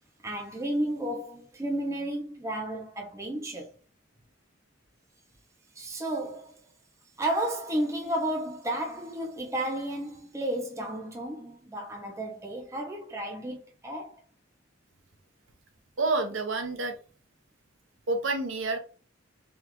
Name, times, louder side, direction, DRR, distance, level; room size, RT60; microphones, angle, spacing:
voice 1, 0.2-3.7 5.8-6.5 7.2-14.2, right 1 dB, 15° right, 0.5 m, -32 dB
voice 2, 16.0-16.9 18.1-18.8, right 3 dB, 65° right, 0.8 m, -28 dB
3.7 x 2.3 x 3.0 m
head